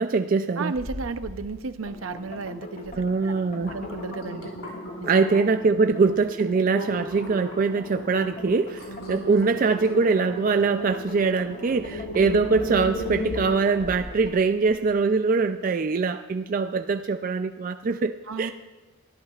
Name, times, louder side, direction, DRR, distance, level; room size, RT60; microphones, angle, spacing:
voice 1, 0.0-0.7 3.0-3.8 5.1-18.5, right 4 dB, 40° right, 8 dB, 0.3 m, -23 dB
voice 2, 0.6-3.4 3.7-4.5 5.0-5.3 5.7-5.8 18.3-18.5, right 4 dB, 75° right, 10 dB, 0.7 m, -34 dB
sound 1, 0.7-1.4 1.8-2.3 2.8-3.0 3.4-5.6 6.1-6.3 6.7-14.2 14.7-14.8, equal, 85° left, 5.3 m, -36 dB
sound 2, 1.9-14.4, left 1 dB, 35° left, 0.8 m, -43 dB
24.0 x 14.0 x 2.4 m, 1.3 s
head